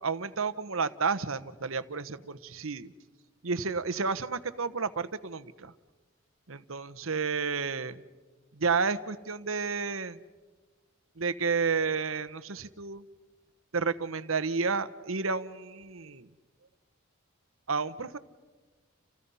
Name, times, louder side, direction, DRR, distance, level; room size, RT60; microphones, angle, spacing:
voice 1, 0.0-2.9 3.4-5.7 6.5-8.0 8.5-10.2 11.2-13.0 13.7-16.3 17.7-18.2, right 5 dB, 85° right, 13 dB, 1.1 m, -31 dB
30.0 x 30.0 x 5.6 m, 1.3 s
head